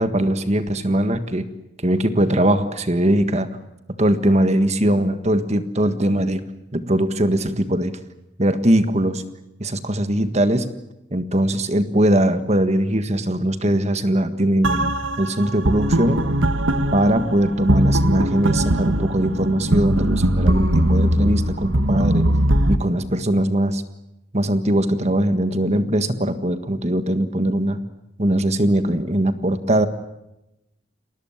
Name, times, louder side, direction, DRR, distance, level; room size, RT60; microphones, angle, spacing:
voice 1, 0.0-1.5 1.8-3.5 4.0-6.4 6.7-7.9 8.4-9.2 9.6-10.7 11.1-16.3 16.9-22.3 22.7-23.8 24.3-27.8 28.2-29.9, right 1 dB, 35° right, 10 dB, 1.6 m, -20 dB
sound 1, 14.6-22.8, right 1 dB, 80° right, 1.6 m, -20 dB
30.0 x 20.5 x 7.3 m, 0.91 s
head